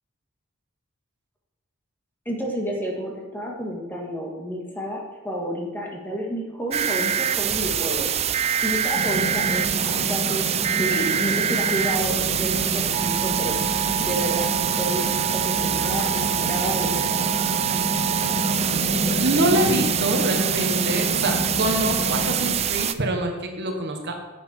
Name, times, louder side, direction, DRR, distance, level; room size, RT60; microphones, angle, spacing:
voice 1, 2.3-8.1 8.6-10.5 10.7-13.6 14.0-15.0 15.3-17.3, equal, 10° left, -1 dB, 1.7 m, -30 dB
sound 1, 6.7-22.9, right 9 dB, 30° right, 0.4 m, -24 dB
sound 2, 8.9-22.6, equal, 35° left, 1.7 m, -29 dB
voice 2, 19.2-24.2, right 1 dB, 50° right, 3 dB, 1.2 m, -25 dB
10.5 x 7.9 x 4.4 m, 1.1 s
head